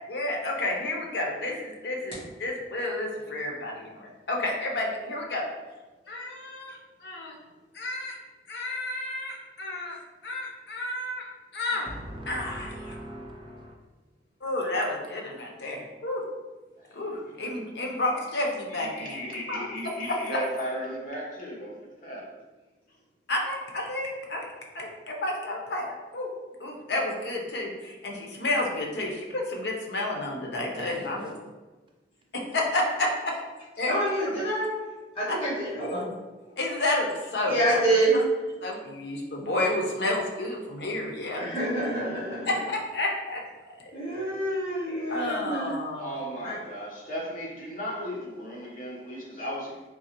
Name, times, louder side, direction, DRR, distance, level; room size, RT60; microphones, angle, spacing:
voice 1, 0.1-5.4 6.1-7.3 7.7-8.1 8.5-10.0 10.2-11.3 11.5-11.9 12.3-13.0 14.4-16.2 16.9-19.2 19.5-19.6 20.1-20.2 23.3-24.4 24.7-26.3 26.6-31.3 32.3-33.3 33.8-33.9 34.3-34.4 35.3-35.4 35.8-36.0 36.6-37.8 38.6-41.4 42.5-43.4 45.1-46.2, left 2 dB, 70° left, 0 dB, 0.7 m, -30 dB
voice 2, 11.9-13.8 30.5-31.1, equal, 30° right, 0 dB, 0.4 m, -40 dB
voice 3, 16.8-17.3 18.7-22.3 46.0-49.9, equal, 45° left, -4 dB, 1.0 m, -36 dB
voice 4, 33.9-34.7 35.1-36.0 37.5-38.2 41.3-42.6 43.9-45.7 46.4-46.6, right 1 dB, 30° left, -11 dB, 1.5 m, -27 dB
3.7 x 2.9 x 2.9 m, 1.2 s
head